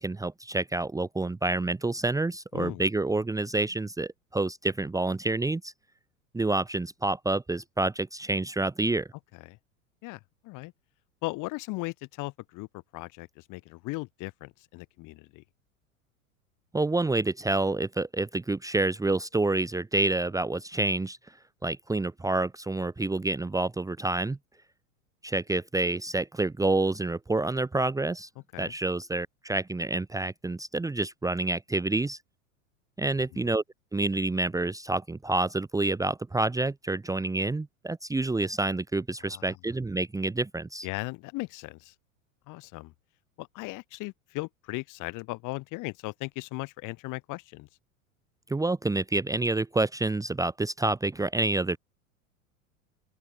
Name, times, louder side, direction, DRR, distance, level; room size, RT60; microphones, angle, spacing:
voice 1, 0.0-5.7 6.3-9.1 16.7-21.2 21.6-24.4 25.2-28.3 28.6-32.2 33.0-33.6 33.9-40.9 48.5-51.8, right 2 dB, 10° right, 1.4 m, -28 dB
voice 2, 2.5-2.9 9.3-9.6 10.0-10.7 11.2-15.4 28.5-28.7 33.3-33.5 39.2-39.6 40.8-41.9 42.5-42.9 43.4-47.7, left 23 dB, 50° left, 3.5 m, -38 dB
open air
hypercardioid pair, 90°, 41 cm